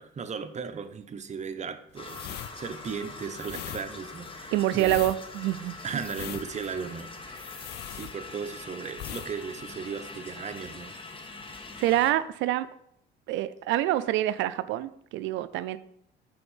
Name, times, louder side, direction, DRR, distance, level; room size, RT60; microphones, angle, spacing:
voice 1, 0.0-5.0 5.8-11.0, right 6 dB, 40° right, 9 dB, 0.7 m, -37 dB
sound 1, 2.0-8.6 8.9-9.3 9.6-9.8, left 12 dB, 60° left, 0.4 m, -40 dB
sound 2, 2.0-12.1, left 3 dB, 25° left, 0.9 m, -43 dB
voice 2, 4.5-5.8 11.8-12.7 13.3-15.8, right 14 dB, 80° right, 15 dB, 0.4 m, -26 dB
5.8 x 3.5 x 5.5 m, 0.72 s
supercardioid pair, 80°, 19 cm